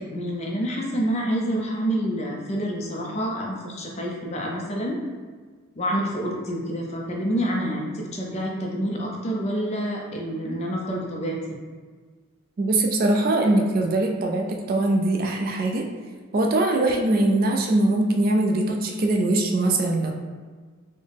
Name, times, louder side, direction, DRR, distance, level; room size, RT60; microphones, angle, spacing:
voice 1, 0.0-5.0 5.8-11.4, equal, 30° left, -1 dB, 0.5 m, -27 dB
voice 2, 12.6-15.9 16.3-20.1, right 2 dB, 45° right, 2 dB, 0.3 m, -22 dB
4.0 x 2.0 x 3.4 m, 1.5 s
head